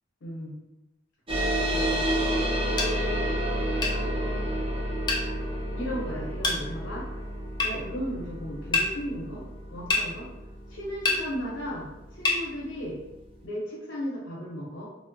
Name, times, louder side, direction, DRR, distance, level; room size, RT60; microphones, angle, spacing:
voice 1, 0.2-0.6 1.7-2.1 3.7-4.5 5.8-7.1 7.6-9.5 9.7-10.3 10.7-13.0 13.4-14.9, equal, 80° left, -5 dB, 0.6 m, -35 dB
sound 1, 1.3-12.2, equal, 30° right, 0.5 m, -30 dB
sound 2, 2.8-2.9 3.8-4.0 5.1-5.3 6.4-6.6 7.6-7.7 8.7-8.9 9.9-10.1 11.0-11.2 12.2-12.4, left 3 dB, 20° left, 0.4 m, -25 dB
2.5 x 2.0 x 2.5 m, 0.96 s
head